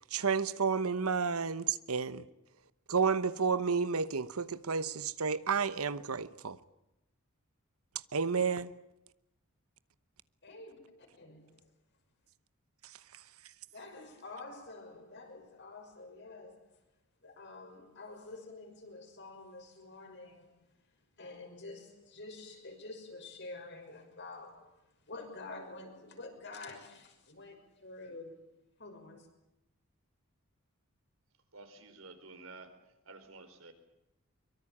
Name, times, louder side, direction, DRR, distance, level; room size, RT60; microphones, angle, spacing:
voice 1, 0.1-2.2 2.9-6.6 8.1-8.7, right 5 dB, 85° right, 1.0 m, -31 dB
voice 2, 10.4-11.4 13.7-16.6 17.2-20.6 21.2-24.8 25.0-28.5 28.8-29.3, left 3 dB, 55° left, 5.9 m, -48 dB
voice 3, 31.5-33.7, right 3 dB, 65° right, 4.2 m, -52 dB
23.5 x 23.0 x 8.7 m
head